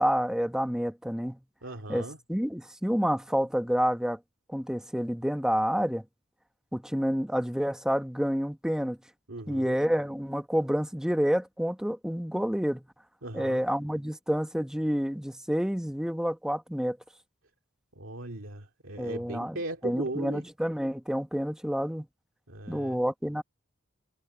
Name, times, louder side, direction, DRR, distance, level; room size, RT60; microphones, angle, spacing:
voice 1, 0.0-1.4 1.9-4.2 4.5-6.0 6.7-9.0 9.5-12.8 13.3-17.0 19.0-19.6 19.8-22.1 22.7-23.4, equal, 5° right, 1.1 m, -28 dB
voice 2, 1.6-2.2 9.3-9.8 13.2-13.6 18.0-20.4 22.5-23.0, right 2 dB, 80° right, 2.3 m, -38 dB
head